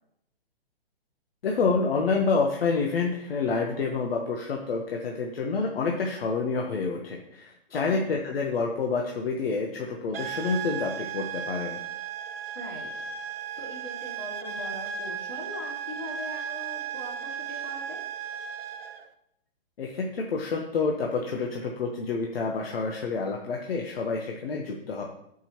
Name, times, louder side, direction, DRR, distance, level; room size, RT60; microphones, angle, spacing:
voice 1, 1.4-11.8 19.8-25.0, left 4 dB, 70° left, 1 dB, 1.3 m, -28 dB
voice 2, 7.7-8.0 12.5-18.0, left 1 dB, 50° left, -3 dB, 3.3 m, -41 dB
sound 1, 10.1-19.1, right 8 dB, 70° right, 0.9 m, -35 dB
13.5 x 5.5 x 3.0 m, 0.79 s
hypercardioid pair, 170°, 31 cm